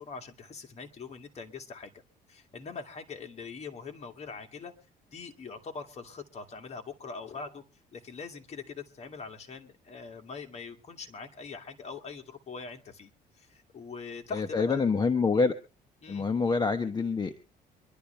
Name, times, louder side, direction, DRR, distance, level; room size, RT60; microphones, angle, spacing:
voice 1, 0.0-1.9 2.3-4.7 5.1-7.6 7.9-14.8 16.0-16.3, left 4 dB, 40° left, 4 dB, 2.2 m, -42 dB
voice 2, 14.3-15.6 16.1-17.4, left 4 dB, 25° left, 8 dB, 1.0 m, -26 dB
24.5 x 11.5 x 3.3 m, 0.34 s
cardioid pair, 110°, 17 cm